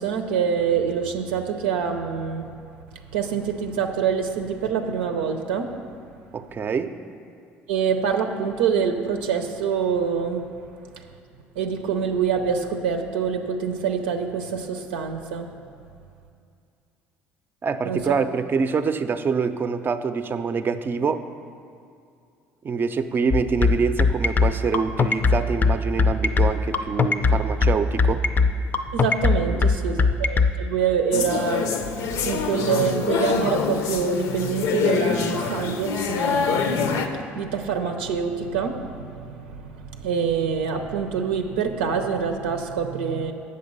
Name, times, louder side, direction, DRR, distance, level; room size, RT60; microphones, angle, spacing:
voice 1, 0.0-2.5 2.9-5.7 7.7-10.6 10.9-11.1 11.5-15.5 17.8-18.0 28.9-36.7 37.1-43.3, right 6 dB, 90° right, 4 dB, 0.6 m, -26 dB
voice 2, 6.3-6.9 17.6-21.2 22.6-28.2 29.5-29.6 30.0-30.1, right 5 dB, 35° right, 10 dB, 0.5 m, -25 dB
sound 1, 23.3-30.5, left 4 dB, 30° left, 0.5 m, -19 dB
sound 2, 31.1-37.1, left 5 dB, 70° left, 0.7 m, -25 dB
7.8 x 6.6 x 5.4 m, 2.4 s
hypercardioid pair, 70°, 6 cm